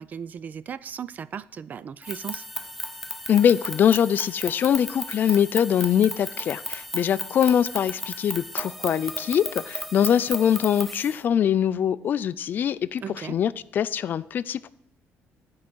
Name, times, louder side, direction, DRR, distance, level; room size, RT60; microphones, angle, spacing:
voice 1, 0.0-2.4 13.0-13.4, right 7 dB, 40° right, 0.4 m, -36 dB
sound 1, 2.0-11.2, left 1 dB, ahead, 0.6 m, -35 dB
voice 2, 3.3-14.7, left 9 dB, 45° left, 0.4 m, -23 dB
12.5 x 4.7 x 6.1 m
cardioid pair, 135°, 5 cm